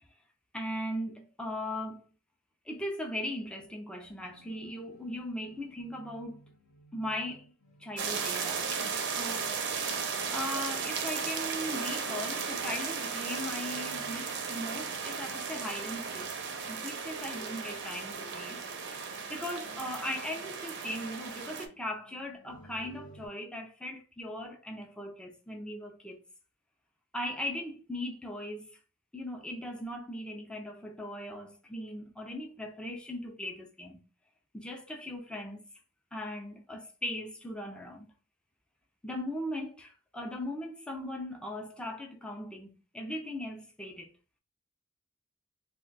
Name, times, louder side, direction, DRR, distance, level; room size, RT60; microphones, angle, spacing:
voice 1, 0.5-2.1 2.7-6.4 6.9-7.5 7.8-9.5 10.3-18.6 18.9-19.0 19.3-26.2 27.1-28.8 29.1-34.0 34.5-35.7 36.1-38.1 39.0-44.1, left 1 dB, 5° left, 0.4 m, -39 dB
sound 1, 4.2-23.3, equal, 70° left, 0.8 m, -56 dB
sound 2, 8.0-21.7, right 6 dB, 55° right, 0.5 m, -35 dB
2.2 x 2.2 x 3.8 m
head